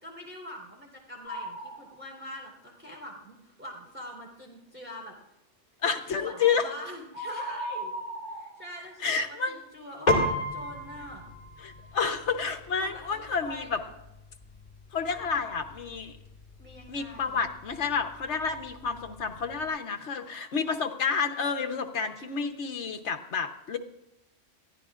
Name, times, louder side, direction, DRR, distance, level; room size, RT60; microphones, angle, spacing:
voice 1, 0.0-5.2 5.8-7.9 8.3-11.2 12.8-14.0 15.2-15.4 16.6-17.4, left 1 dB, 10° right, -1 dB, 3.8 m, -44 dB
sound 1, 1.2-1.8 2.3-2.4 6.4-6.7 7.1-9.0, right 1 dB, 60° right, 4.5 m, -37 dB
voice 2, 5.8-6.7 9.0-9.6 11.6-13.8 14.9-16.2 16.9-23.8, left 5 dB, 65° left, 6 dB, 1.3 m, -30 dB
Piano, 10.1-19.7, left 1 dB, 35° left, 2.5 m, -35 dB
22.5 x 15.0 x 2.5 m, 0.87 s
omnidirectional pair, 1.3 m